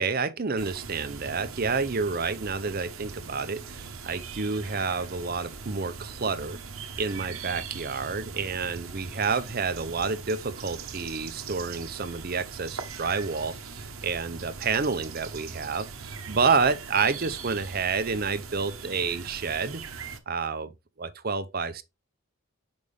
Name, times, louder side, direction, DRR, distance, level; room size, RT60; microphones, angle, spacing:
voice 1, 0.0-6.6 7.0-19.8 20.3-20.7 21.0-21.8, right 5 dB, 45° right, 0.7 m, -29 dB
sound 1, 0.6-20.2, right 5 dB, 75° right, 1.0 m, -41 dB
7.0 x 5.2 x 3.3 m
head